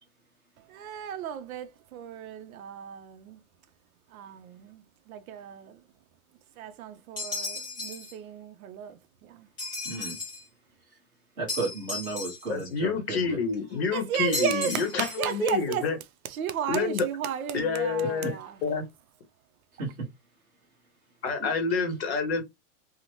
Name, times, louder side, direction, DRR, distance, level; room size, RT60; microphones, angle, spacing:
voice 1, 0.6-3.4 4.1-5.8 6.6-9.5 13.9-15.9 16.2-18.6, right 9 dB, 70° right, 0.5 m, -34 dB
sound 1, 7.2-8.1 9.6-10.5 11.5-12.7 14.3-15.3, left 2 dB, 15° left, 0.4 m, -35 dB
voice 2, 9.8-10.2 11.4-13.4 19.8-20.1 21.4-21.5, right 3 dB, 15° right, 0.8 m, -34 dB
voice 3, 12.5-16.0 16.7-17.1 17.5-18.4 18.6-18.8 21.2-22.4, left 5 dB, 45° left, 0.7 m, -28 dB
2.8 x 2.0 x 3.0 m
supercardioid pair, 175°, 43 cm